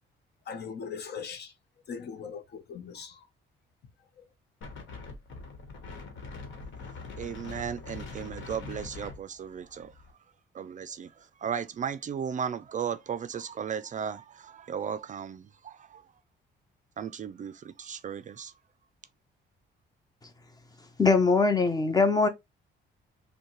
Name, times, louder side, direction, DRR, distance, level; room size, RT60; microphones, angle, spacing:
voice 1, 0.5-1.5 1.9-3.3 4.2-4.3, left 6 dB, 55° left, 0.8 m, -40 dB
Wind, 4.6-10.1, left 4 dB, 70° left, 1.1 m, -43 dB
voice 2, 7.2-9.9 10.5-16.0 17.0-18.5, right 7 dB, 40° right, 0.4 m, -36 dB
voice 3, 21.0-22.3, left 4 dB, 20° left, 0.7 m, -22 dB
5.3 x 2.2 x 3.0 m
cardioid pair, 90°, 20 cm